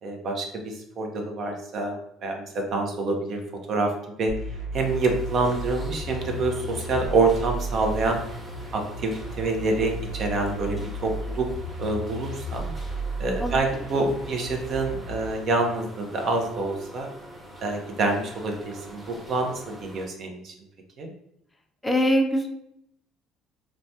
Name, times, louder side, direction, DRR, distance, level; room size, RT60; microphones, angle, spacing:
voice 1, 0.0-3.4 3.7-3.9 4.2-4.3 4.7-8.2 8.7-11.5 11.8-12.7 13.2-17.1 17.6-20.5 21.0-21.1, right 3 dB, 55° right, 3 dB, 0.6 m, -27 dB
sound 1, 4.3-15.3, right 1 dB, 75° right, 1.3 m, -34 dB
sound 2, 4.7-20.1, equal, 15° right, 0.9 m, -44 dB
voice 2, 21.8-22.5, equal, 10° left, 3 dB, 0.4 m, -22 dB
3.1 x 2.2 x 2.7 m, 0.76 s
supercardioid pair, 90°, 0 cm